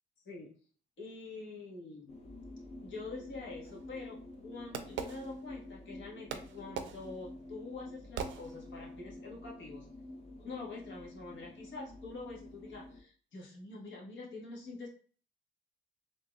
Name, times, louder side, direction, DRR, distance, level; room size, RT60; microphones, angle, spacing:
voice 1, 1.0-2.1 2.8-9.9 10.4-14.9, left 3 dB, 70° left, -3 dB, 1.4 m, -46 dB
sound 1, 2.1-13.0, left 1 dB, 30° left, 0.9 m, -49 dB
Fireworks, 3.6-5.9 6.3-9.0, right 7 dB, 75° right, 0.5 m, -43 dB
4.1 x 2.8 x 2.3 m, 0.42 s
cardioid pair, 90°, 20 cm